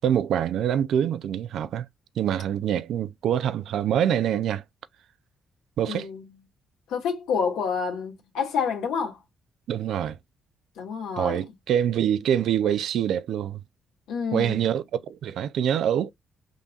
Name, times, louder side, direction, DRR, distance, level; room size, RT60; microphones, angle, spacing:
voice 1, 0.0-1.9 2.2-4.6 5.8-6.1 9.7-10.2 11.2-13.6 14.3-16.1, right 9 dB, 75° right, 0.5 m, -25 dB
voice 2, 5.8-6.3 6.9-9.2 10.8-11.4 14.1-14.6, left 6 dB, 85° left, 1.8 m, -28 dB
5.4 x 3.6 x 2.4 m
cardioid pair, 90°, 0 cm